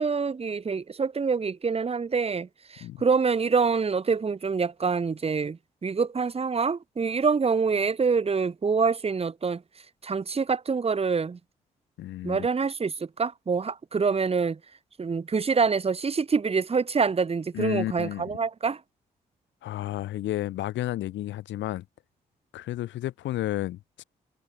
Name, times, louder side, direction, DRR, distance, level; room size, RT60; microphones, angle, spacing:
voice 1, 0.0-9.6 10.0-11.4 12.2-14.6 15.0-18.8, right 5 dB, 30° right, 1.0 m, -26 dB
voice 2, 12.0-12.5 17.5-18.4 19.6-21.8 22.5-24.0, left 14 dB, 70° left, 1.3 m, -32 dB
hypercardioid pair, 40°, 20 cm